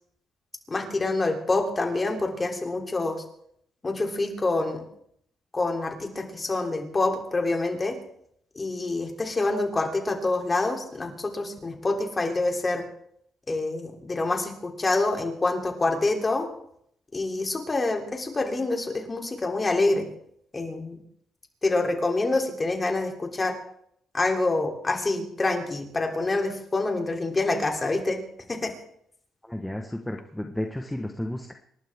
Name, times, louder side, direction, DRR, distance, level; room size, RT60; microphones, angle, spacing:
voice 1, 0.7-3.2 3.8-4.8 5.5-8.0 8.5-12.8 13.5-16.5 17.1-20.1 20.5-21.0 21.6-23.5 24.1-28.2 28.5-28.7, left 2 dB, 25° left, 3 dB, 3.2 m, -26 dB
voice 2, 29.4-31.5, left 1 dB, 5° left, 3 dB, 1.3 m, -32 dB
27.5 x 12.0 x 3.7 m, 0.70 s
cardioid pair, 90°, 0 cm